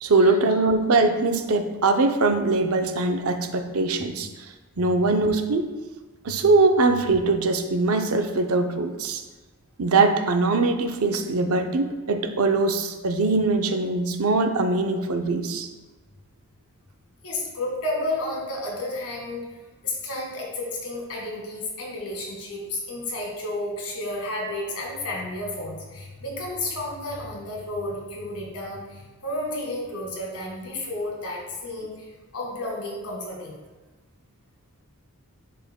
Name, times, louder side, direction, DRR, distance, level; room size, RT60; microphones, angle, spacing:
voice 1, 0.0-4.3 4.8-5.7 6.2-9.2 9.8-15.7, right 3 dB, 70° right, 6 dB, 0.6 m, -22 dB
voice 2, 17.2-19.4 19.8-32.1 32.3-33.6, left 1 dB, 80° left, -1 dB, 1.8 m, -32 dB
10.5 x 5.0 x 2.2 m, 1.3 s
head